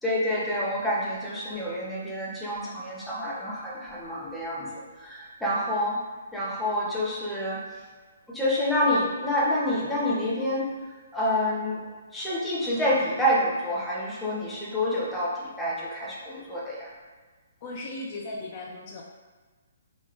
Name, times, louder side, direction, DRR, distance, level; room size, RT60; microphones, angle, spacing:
voice 1, 0.0-4.7 5.0-6.0 6.3-7.6 8.3-10.7 11.1-11.8 12.1-16.9, left 1 dB, 5° left, -7 dB, 0.6 m, -28 dB
voice 2, 17.6-19.0, left 2 dB, 40° left, -1 dB, 0.4 m, -37 dB
2.9 x 2.1 x 3.0 m, 1.4 s
hypercardioid pair, 140°, 0 cm